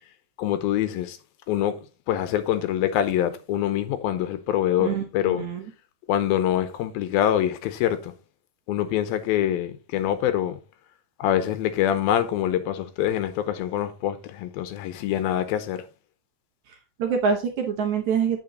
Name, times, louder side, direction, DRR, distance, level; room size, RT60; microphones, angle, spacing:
voice 1, 0.4-1.2 1.5-1.8 2.1-5.4 6.1-8.1 8.7-10.6 11.2-15.8, left 11 dB, 80° left, 2.6 m, -25 dB
voice 2, 4.8-5.6 16.7-18.4, right 6 dB, 65° right, 2.0 m, -26 dB
8.9 x 6.1 x 3.9 m
omnidirectional pair, 4.4 m